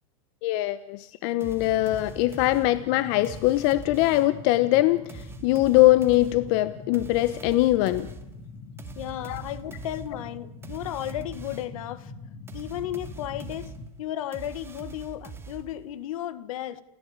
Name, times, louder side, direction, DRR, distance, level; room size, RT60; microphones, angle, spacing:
voice 1, 0.4-8.1 9.3-9.4, left 16 dB, 55° left, 1.0 m, -22 dB
sound 1, 1.4-4.5 5.1-11.8 12.5-16.0, right 5 dB, 15° right, 2.3 m, -44 dB
sound 2, 1.6-13.9, left 4 dB, 25° left, 2.1 m, -43 dB
voice 2, 8.9-12.1 12.5-13.7 14.0-16.8, left 12 dB, 75° left, 1.8 m, -34 dB
30.0 x 14.5 x 8.8 m
supercardioid pair, 130°, 18 cm